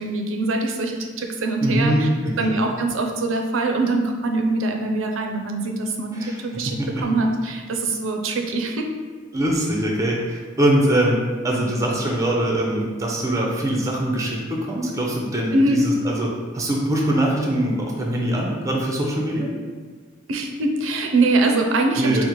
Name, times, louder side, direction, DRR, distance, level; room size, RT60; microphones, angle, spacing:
voice 1, 0.0-2.1 2.4-8.9 15.5-15.8 20.3-22.3, right 2 dB, 90° right, 3 dB, 0.5 m, -23 dB
voice 2, 1.6-2.5 6.1-7.1 9.3-11.2 11.4-16.3 16.5-19.5 21.9-22.3, right 1 dB, 15° right, -1 dB, 0.4 m, -23 dB
5.0 x 2.1 x 3.0 m, 1.5 s
head